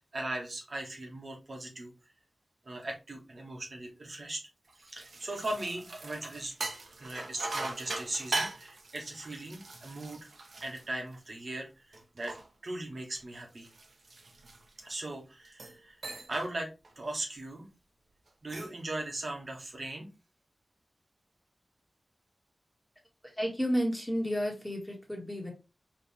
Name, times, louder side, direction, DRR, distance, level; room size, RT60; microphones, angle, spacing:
voice 1, 0.1-1.9 2.6-4.4 4.8-6.5 7.0-10.3 10.6-12.4 12.6-13.7 14.8-16.0 16.3-16.7 17.0-17.7 18.4-20.1, right 2 dB, 60° right, 0 dB, 1.3 m, -39 dB
sound 1, 4.7-11.5 11.9-14.9 15.4-16.5 16.8-17.1 18.3-18.8, right 2 dB, 80° right, 0.9 m, -40 dB
voice 2, 23.2-25.5, equal, 5° left, 0 dB, 1.8 m, -31 dB
4.4 x 3.2 x 3.4 m, 0.27 s
wide cardioid pair, 90°, 0 cm